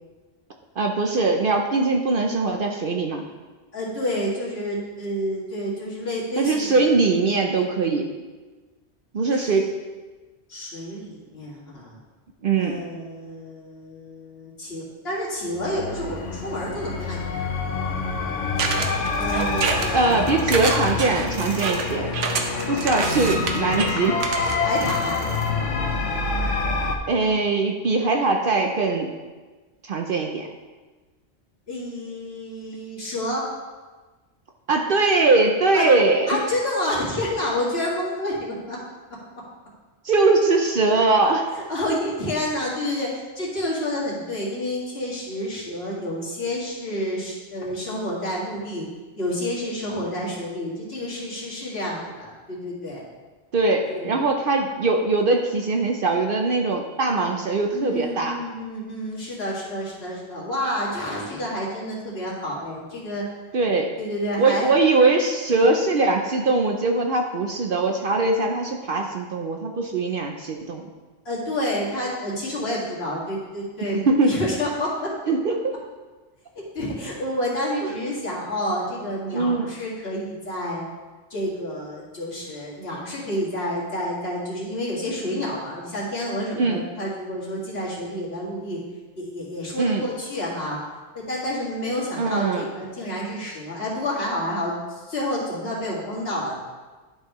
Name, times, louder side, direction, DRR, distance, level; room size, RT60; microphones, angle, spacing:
voice 1, 0.8-3.2 6.4-8.1 9.1-9.7 12.4-12.8 19.9-22.1 22.7-24.2 27.1-29.1 29.8-30.5 34.7-36.4 40.0-41.5 41.9-42.0 53.5-58.4 63.5-64.0 64.4-70.9 73.9-74.3 75.3-75.7 77.8-77.9 79.3-79.7 86.5-86.8 89.8-90.0 92.2-92.7, right 3 dB, 55° right, 3 dB, 0.7 m, -21 dB
voice 2, 3.7-6.8 9.3-9.6 10.5-12.0 12.6-17.5 19.2-20.3 24.6-25.2 31.7-33.4 35.7-35.9 36.3-38.8 41.5-48.9 49.2-53.0 53.9-54.2 57.7-63.2 64.0-64.6 65.5-65.7 71.3-75.1 76.5-80.8 81.3-88.8 89.2-90.8 91.1-96.6, left 1 dB, 55° left, -6 dB, 2.3 m, -29 dB
sound 1, 15.5-27.0, left 4 dB, 90° left, 1.2 m, -27 dB
sound 2, 18.6-25.5, right 4 dB, 80° right, 1.1 m, -28 dB
11.0 x 5.6 x 3.1 m, 1.3 s
omnidirectional pair, 1.2 m